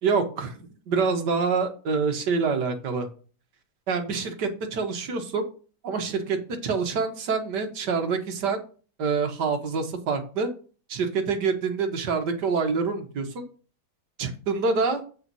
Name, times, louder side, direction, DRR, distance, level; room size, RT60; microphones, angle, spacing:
voice 1, 0.0-3.1 3.9-5.5 5.8-6.4 6.6-8.6 9.0-10.5 10.9-13.5 14.2-15.0, right 5 dB, 75° right, 6 dB, 1.9 m, -26 dB
8.1 x 4.1 x 6.1 m, 0.38 s
omnidirectional pair, 1.8 m